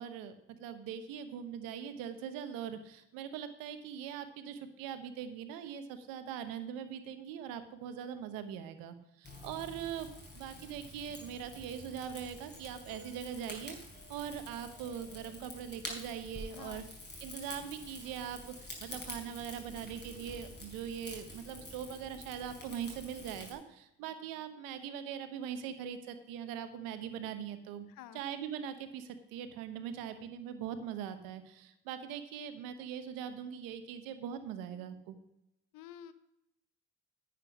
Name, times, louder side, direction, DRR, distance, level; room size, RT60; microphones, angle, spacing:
voice 1, 0.0-10.1 10.3-13.8 14.1-16.8 17.2-27.9 28.1-35.2, right 8 dB, 85° right, 10 dB, 1.0 m, -41 dB
Rain / Fire, 9.2-23.5, left 1 dB, 30° left, 5.1 m, -48 dB
voice 2, 16.5-16.8 27.9-28.2 35.7-36.1, left 10 dB, 75° left, 13 dB, 0.9 m, -49 dB
10.5 x 7.6 x 6.0 m, 0.85 s
hypercardioid pair, 45°, 33 cm